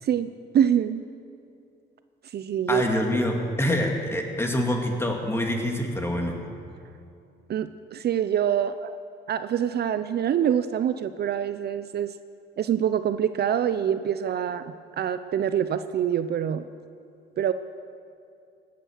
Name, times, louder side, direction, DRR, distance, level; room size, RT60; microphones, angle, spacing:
voice 1, 0.0-1.0 2.3-2.8 7.5-9.0 9.3-12.1 12.6-16.7 17.4-17.5, right 9 dB, 55° right, 12 dB, 0.5 m, -25 dB
voice 2, 2.7-6.4, left 1 dB, 10° left, 2 dB, 2.3 m, -26 dB
17.5 x 9.3 x 6.5 m, 2.5 s
cardioid pair, 90°, 20 cm